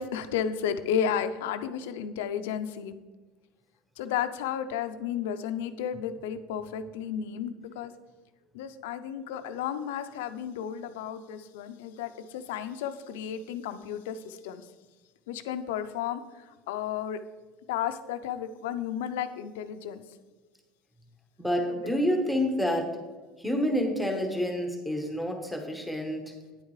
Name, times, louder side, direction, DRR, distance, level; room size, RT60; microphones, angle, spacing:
voice 1, 0.0-2.9 4.0-7.9 8.5-14.6 15.3-17.2 17.7-20.0 21.8-21.9, left 8 dB, 85° left, 10 dB, 0.6 m, -33 dB
voice 2, 21.4-23.0 23.4-26.3, equal, ahead, 2 dB, 1.2 m, -28 dB
9.5 x 8.2 x 3.2 m, 1.3 s
supercardioid pair, 125°, 0 cm